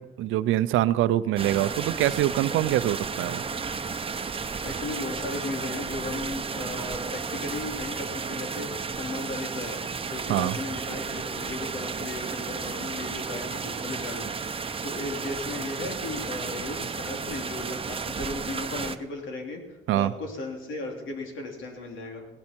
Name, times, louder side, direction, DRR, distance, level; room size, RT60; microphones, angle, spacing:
voice 1, 0.0-3.4 10.3-10.6 19.9-20.1, right 14 dB, 85° right, 15 dB, 0.5 m, -24 dB
sound 1, 1.4-19.0, right 5 dB, 30° right, 0.9 m, -33 dB
voice 2, 4.3-9.8 10.1-22.3, left 2 dB, 80° left, 1 dB, 3.4 m, -36 dB
17.5 x 12.0 x 4.5 m, 1.1 s
cardioid pair, 90°, 20 cm